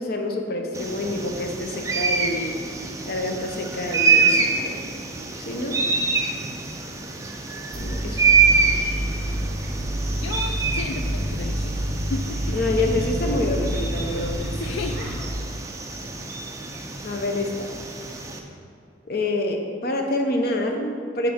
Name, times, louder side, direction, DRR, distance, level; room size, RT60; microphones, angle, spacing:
voice 1, 0.0-2.6 3.0-4.8 5.4-5.8 7.7-8.2 12.5-14.4 17.0-17.7 19.1-21.3, left 2 dB, 50° left, 3 dB, 0.7 m, -27 dB
Short Toed Eagle call., 0.7-18.4, right 4 dB, 15° right, 0.4 m, -26 dB
sound 1, 7.7-15.3, equal, 55° right, 1.4 m, -28 dB
voice 2, 10.2-12.8 14.6-15.1, left 4 dB, 80° left, 5 dB, 0.3 m, -34 dB
8.1 x 3.7 x 5.0 m, 2.6 s
head